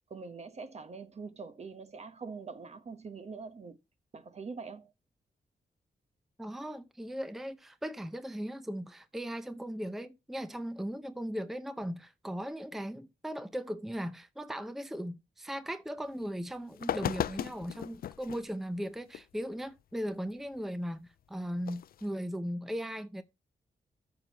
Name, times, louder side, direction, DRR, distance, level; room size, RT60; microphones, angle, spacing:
voice 1, 0.1-3.8 4.1-4.9 16.9-17.1, right 4 dB, 45° right, 1.1 m, -44 dB
voice 2, 6.4-23.2, equal, ahead, 0.6 m, -38 dB
sound 1, 16.2-16.3 16.7-18.4 19.1-19.2 21.6-22.1, left 10 dB, 70° left, 0.4 m, -36 dB
14.0 x 6.4 x 2.9 m
wide cardioid pair, 130°, 16 cm